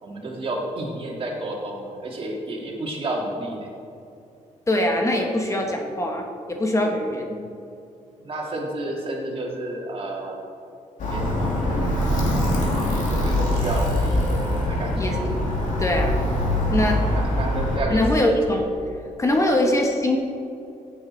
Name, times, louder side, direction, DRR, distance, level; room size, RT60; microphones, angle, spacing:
voice 1, 0.0-3.7 8.2-10.4 11.1-11.5 12.9-14.3 14.7-15.1 17.1-18.4 19.4-19.6, right 2 dB, 45° right, -1 dB, 2.1 m, -31 dB
voice 2, 4.7-7.4 14.9-15.2 15.8-16.2 16.7-17.0 17.9-18.7 19.2-20.2, left 1 dB, 20° left, 2 dB, 1.1 m, -22 dB
Alarm, 11.0-17.8, left 1 dB, 70° left, 2.6 m, -23 dB
15.5 x 8.0 x 4.4 m, 2.7 s
wide cardioid pair, 145°, 14 cm